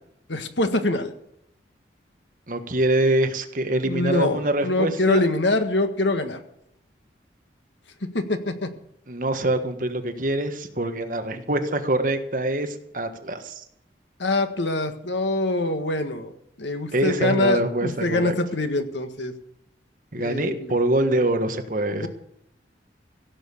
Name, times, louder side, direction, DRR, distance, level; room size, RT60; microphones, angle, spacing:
voice 1, 0.3-1.1 3.8-4.4 4.6-6.4 8.1-8.7 14.2-16.3 16.6-19.3 20.2-20.7 22.0-22.1, left 2 dB, 80° left, 8 dB, 1.6 m, -24 dB
voice 2, 2.5-5.3 9.1-13.6 16.9-18.3 20.1-22.1, right 1 dB, 45° right, 7 dB, 1.5 m, -24 dB
16.5 x 7.4 x 8.5 m, 0.79 s
head